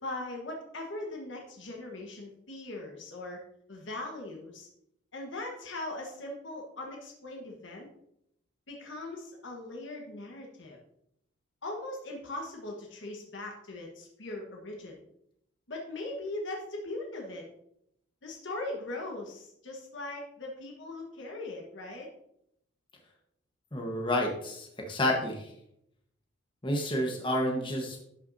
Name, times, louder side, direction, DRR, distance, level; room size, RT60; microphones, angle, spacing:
voice 1, 0.0-3.4 3.7-4.7 5.1-7.9 8.7-10.8 11.6-15.0 15.7-17.4 18.2-22.1, left 2 dB, 80° left, 0 dB, 1.3 m, -40 dB
voice 2, 23.7-25.5 26.6-28.0, left 1 dB, 25° left, 1 dB, 1.2 m, -30 dB
11.5 x 5.9 x 2.7 m, 0.77 s
head